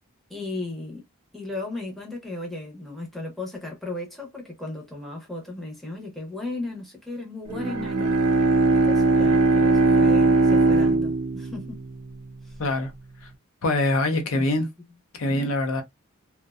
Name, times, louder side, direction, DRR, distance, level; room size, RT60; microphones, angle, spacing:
voice 1, 0.3-1.0 1.3-8.4 8.7-11.8 12.4-12.6 14.3-14.4 15.3-15.5, left 2 dB, ahead, 0.6 m, -35 dB
Bowed string instrument, 7.5-12.3, right 3 dB, 85° right, 0.5 m, -20 dB
voice 2, 12.6-12.9 13.2-13.3 13.6-14.7 15.1-15.8, left 2 dB, 65° left, 0.5 m, -24 dB
2.6 x 2.1 x 2.3 m
head